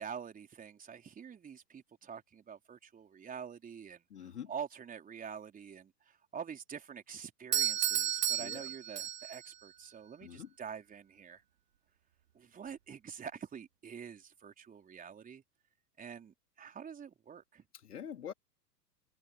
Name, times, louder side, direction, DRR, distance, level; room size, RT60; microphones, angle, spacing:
voice 1, 0.0-11.4 12.3-15.4 16.0-17.6, right 7 dB, 15° right, 4.5 m, -46 dB
voice 2, 4.1-4.5 8.4-8.7 10.2-10.5 17.7-18.3, left 8 dB, 65° left, 3.5 m, -45 dB
Doorbell, 7.5-9.5, right 11 dB, 70° right, 0.7 m, -32 dB
figure-of-eight pair, 100°, 49 cm